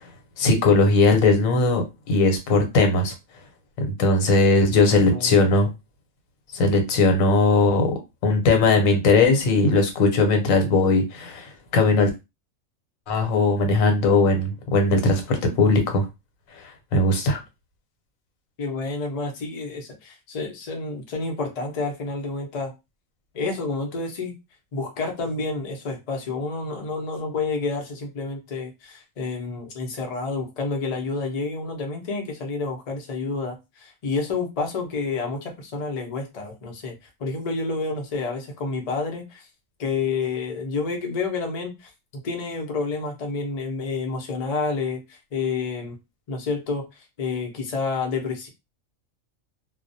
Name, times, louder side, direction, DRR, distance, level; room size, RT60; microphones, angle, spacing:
voice 1, 0.4-3.1 3.8-5.7 6.5-12.1 13.1-16.1 16.9-17.4, left 3 dB, 80° left, 1.1 m, -19 dB
voice 2, 5.1-5.5 18.6-22.7 23.3-24.4 24.7-36.9 37.2-39.5 39.8-41.9 42.2-46.0 46.3-48.5, left 4 dB, 45° left, 0.5 m, -29 dB
2.3 x 2.1 x 2.6 m
omnidirectional pair, 1.4 m